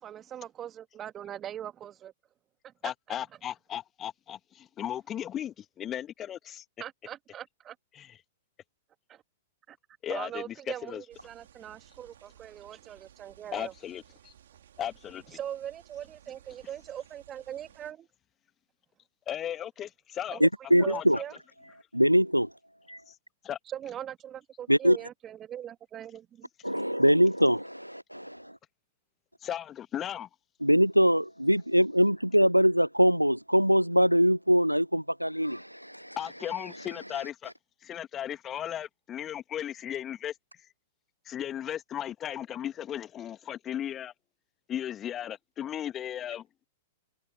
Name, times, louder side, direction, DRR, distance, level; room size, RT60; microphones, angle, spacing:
voice 1, 0.0-2.1 2.6-2.9 6.8-7.8 9.1-9.2 9.7-9.8 10.1-13.7 15.3-18.1 20.3-20.5 20.8-21.3 23.7-26.5, right 10 dB, 25° right, 2.3 m, -41 dB
voice 2, 2.8-6.6 7.9-8.1 10.0-10.5 10.9-11.0 13.5-14.3 14.8-15.4 19.3-20.4 20.8-21.0 23.1-23.2 23.4-23.6 29.4-30.3 36.2-37.5 37.8-40.3 41.3-44.1 44.7-46.5, left 10 dB, 25° left, 1.9 m, -36 dB
sound 1, 11.1-17.9, right 10 dB, 55° right, 4.2 m, -58 dB
voice 3, 20.4-21.2 21.9-22.5 22.9-23.0 24.7-25.0 26.6-28.6 30.6-36.2, equal, 90° right, 0.6 m, -23 dB
figure-of-eight pair, 105°, 0 cm